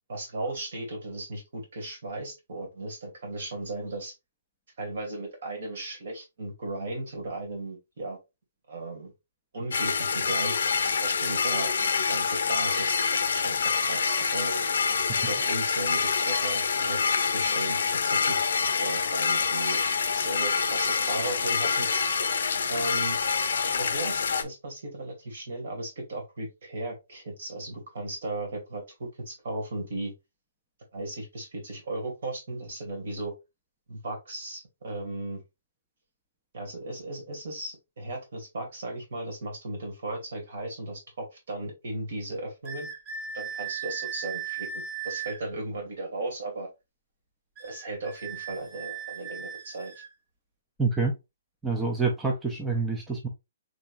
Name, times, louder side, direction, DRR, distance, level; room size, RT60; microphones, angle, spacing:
voice 1, 0.1-4.1 4.8-8.2 8.7-9.1 9.5-10.6 11.0-13.0 13.3-14.7 15.2-16.0 16.3-18.5 18.8-19.8 20.1-21.9 22.7-23.2 23.8-30.1 30.9-33.3 33.9-35.4 36.5-42.9 43.3-46.7 47.6-50.0, right 2 dB, 60° right, 2.0 m, -36 dB
sound 1, 9.7-24.4, left 5 dB, 70° left, 0.7 m, -26 dB
sound 2, 42.6-45.4 47.6-50.1, right 8 dB, 25° right, 0.9 m, -37 dB
voice 2, 50.8-51.1 51.6-53.3, right 4 dB, 5° right, 0.4 m, -27 dB
3.8 x 3.3 x 2.5 m
hypercardioid pair, 175°, 0 cm